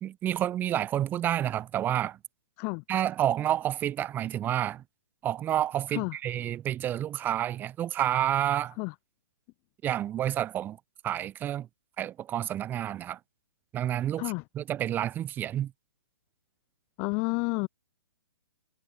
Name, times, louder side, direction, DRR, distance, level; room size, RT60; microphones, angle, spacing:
voice 1, 0.0-2.2 2.9-4.8 5.2-8.7 9.8-10.8 11.0-11.7 12.0-13.2 13.7-15.7, right 11 dB, 15° right, 0.8 m, -29 dB
voice 2, 17.0-17.7, left 32 dB, 25° left, 0.5 m, -30 dB
figure-of-eight pair, 125°, 12 cm